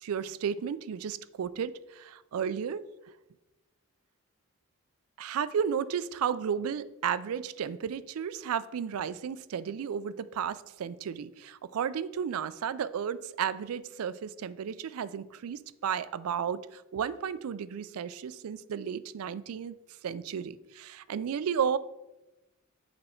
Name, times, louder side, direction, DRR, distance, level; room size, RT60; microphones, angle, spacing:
voice 1, 0.0-2.9 5.2-19.8 20.0-21.8, right 7 dB, 80° right, 0.4 m, -33 dB
7.7 x 4.3 x 4.3 m
head